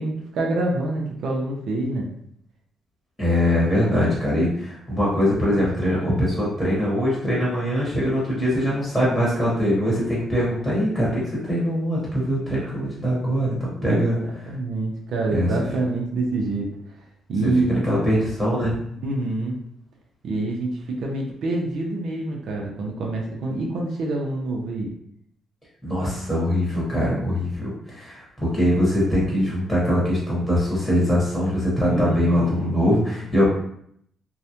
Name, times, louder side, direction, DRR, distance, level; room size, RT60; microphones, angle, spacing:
voice 1, 0.0-2.1 13.8-16.7 17.3-17.8 19.0-19.6 20.2-24.9 31.9-32.7, right 2 dB, 70° right, 0 dB, 0.5 m, -26 dB
voice 2, 3.2-14.2 15.3-15.5 17.4-17.5 17.8-18.8 25.8-33.5, equal, ahead, -6 dB, 1.1 m, -22 dB
2.3 x 2.1 x 2.8 m, 0.69 s
cardioid pair, 90°, 0 cm